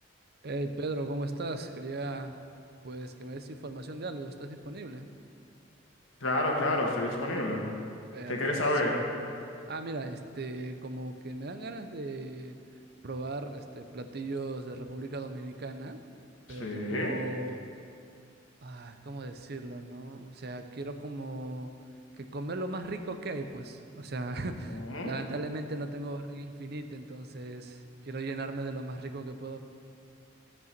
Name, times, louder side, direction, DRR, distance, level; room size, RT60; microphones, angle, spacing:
voice 1, 0.4-2.4 2.8-5.1 8.1-9.1 9.7-12.6 13.0-16.0 16.5-17.7 18.6-21.7 22.2-29.6, right 2 dB, 55° right, 8 dB, 0.7 m, -37 dB
voice 2, 6.2-7.6 8.3-9.0 16.5-17.1 24.9-25.1, left 1 dB, 85° left, 0 dB, 1.6 m, -29 dB
13.5 x 5.4 x 6.7 m, 2.5 s
head